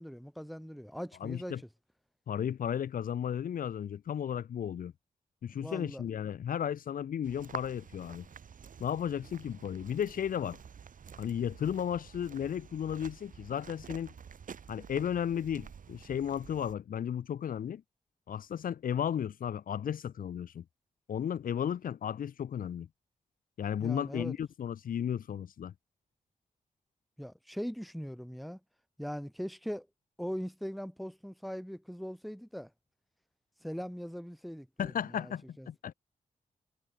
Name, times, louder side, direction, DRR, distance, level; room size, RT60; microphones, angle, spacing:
voice 1, 0.0-1.6 5.5-6.0 23.8-24.3 27.2-28.6 29.0-29.9 30.2-32.7 33.6-35.7, equal, ahead, 1.0 m, -40 dB
voice 2, 1.2-1.6 2.3-4.9 5.4-8.3 8.8-10.6 11.2-14.1 14.7-17.8 18.3-20.6 21.1-22.9 23.6-25.7 34.8-35.9, left 9 dB, 80° left, 0.7 m, -34 dB
sound 1, 7.2-16.7, right 7 dB, 70° right, 1.7 m, -49 dB
cardioid pair, 70°, 14 cm